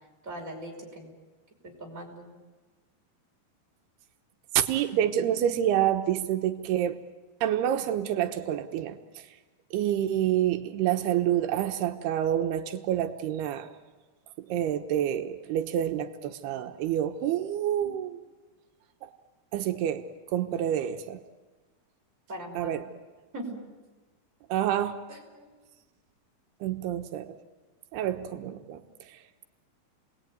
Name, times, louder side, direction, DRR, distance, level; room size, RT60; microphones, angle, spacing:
voice 1, 0.2-1.1 1.6-2.3 17.8-18.0 22.3-22.8 23.3-23.6 25.1-25.5, right 1 dB, 20° right, 0 dB, 5.7 m, -40 dB
voice 2, 4.5-7.0 7.4-9.3 9.7-13.7 14.4-18.2 19.0-19.1 19.5-20.1 20.3-21.2 22.5-22.8 24.5-25.0 26.6-27.4 27.9-29.2, right 11 dB, 90° right, 6 dB, 3.1 m, -28 dB
30.0 x 20.5 x 9.4 m, 1.3 s
omnidirectional pair, 4.4 m